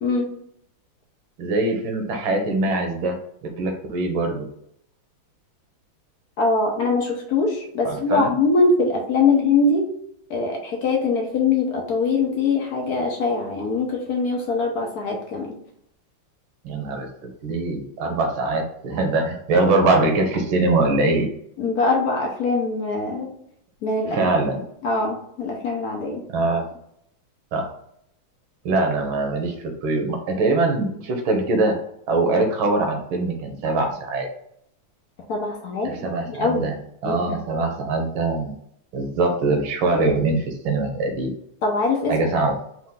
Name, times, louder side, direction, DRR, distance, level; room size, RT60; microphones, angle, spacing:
voice 1, 1.4-3.2 3.6-4.5 7.8-8.3 16.6-21.3 24.1-24.6 26.3-26.6 27.5-27.7 28.6-31.8 32.1-34.3 35.8-36.8 37.0-38.5 38.9-41.3 42.1-42.5, right 2 dB, 70° right, 3 dB, 1.6 m, -22 dB
voice 2, 6.4-9.9 10.3-15.6 21.6-23.3 23.8-24.2 24.4-24.5 24.8-26.2 35.3-35.9 36.3-36.7 37.0-37.4 41.6-42.1, left 3 dB, 65° left, 1 dB, 0.9 m, -22 dB
4.5 x 2.5 x 3.8 m, 0.72 s
omnidirectional pair, 2.4 m